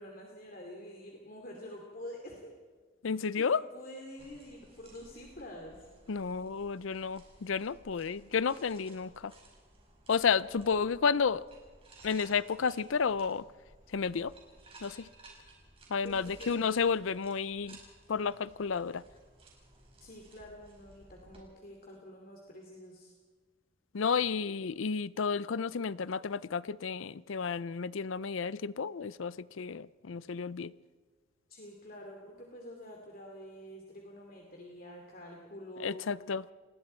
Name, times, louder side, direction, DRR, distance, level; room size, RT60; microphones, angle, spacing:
voice 1, 0.0-2.5 3.1-5.8 16.0-16.5 20.0-23.1 31.5-36.1, left 1 dB, 45° left, 2.7 m, -47 dB
voice 2, 3.0-3.6 6.1-9.3 10.1-11.4 12.0-13.4 13.9-14.3 14.8-15.1 15.9-17.8 18.1-19.0 23.9-30.7 35.8-36.4, left 5 dB, 80° left, 0.5 m, -31 dB
sound 1, 4.2-21.4, right 2 dB, 30° right, 5.2 m, -57 dB
29.5 x 20.5 x 4.4 m
head